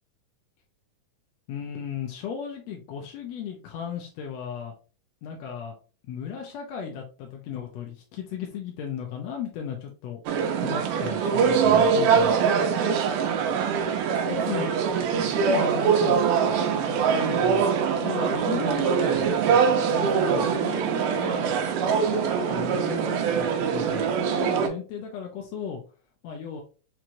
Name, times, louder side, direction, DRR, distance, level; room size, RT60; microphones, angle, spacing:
voice 1, 1.5-4.7 5.2-5.7 6.0-10.2 10.6-12.3 14.1-17.7 18.0-21.5 21.8-25.8 26.2-26.6, left 7 dB, 75° left, 1 dB, 1.6 m, -35 dB
sound 1, 10.3-24.7, right 6 dB, 85° right, 2.3 m, -23 dB
5.7 x 3.0 x 2.5 m, 0.35 s
omnidirectional pair, 3.8 m